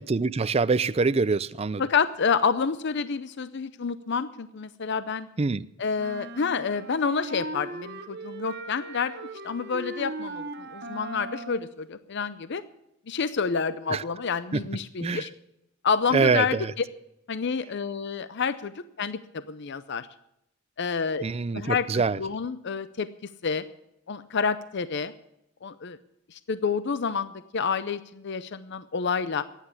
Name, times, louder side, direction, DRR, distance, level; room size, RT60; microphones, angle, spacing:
voice 1, 0.1-1.8 5.4-5.7 13.9-14.0 15.0-15.2 16.1-16.7 21.2-22.2, right 4 dB, 30° right, 0.4 m, -24 dB
voice 2, 1.8-5.3 5.8-12.6 13.1-15.3 15.8-16.8 17.3-20.1 20.8-21.2 21.5-23.1 23.4-23.6 24.1-25.1 25.6-26.0 26.3-29.4, left 5 dB, 60° left, 0.6 m, -29 dB
sound 1, 6.0-11.7, right 2 dB, 55° right, 1.2 m, -38 dB
14.5 x 10.0 x 8.3 m
head